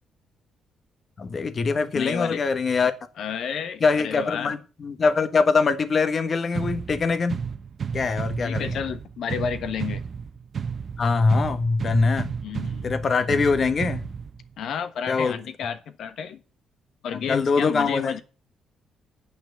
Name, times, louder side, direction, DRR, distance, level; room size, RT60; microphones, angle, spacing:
voice 1, 1.2-2.9 3.8-7.4 7.9-8.7 11.0-12.3 12.8-14.1 15.1-15.3 17.1-18.1, left 4 dB, 40° left, 1.4 m, -23 dB
voice 2, 1.9-2.4 3.2-4.6 8.4-10.0 12.4-12.9 14.6-16.4 17.0-18.2, left 7 dB, 70° left, 1.3 m, -31 dB
sound 1, 6.5-14.5, right 6 dB, 45° right, 0.9 m, -32 dB
9.3 x 6.0 x 8.1 m
cardioid pair, 90°, 0 cm